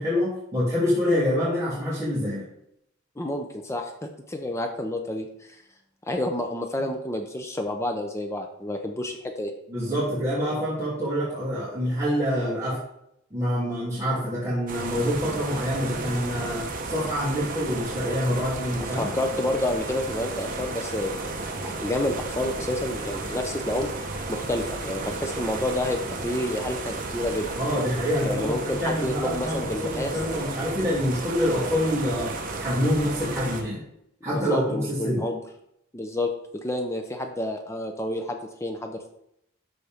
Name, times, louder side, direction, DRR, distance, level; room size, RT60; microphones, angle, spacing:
voice 1, 0.0-2.4 9.7-12.8 13.3-19.1 27.6-32.3 32.6-33.8 34.2-35.2, equal, 15° right, -11 dB, 2.8 m, -26 dB
voice 2, 3.2-5.6 6.1-9.5 16.0-16.1 18.8-23.9 24.3-27.5 28.2-30.1 34.3-35.4 35.9-36.3 36.6-39.1, left 1 dB, 15° left, 4 dB, 0.6 m, -29 dB
sound 1, 14.7-33.6, right 3 dB, 40° right, 1.2 m, -33 dB
12.5 x 4.2 x 3.5 m, 0.76 s
head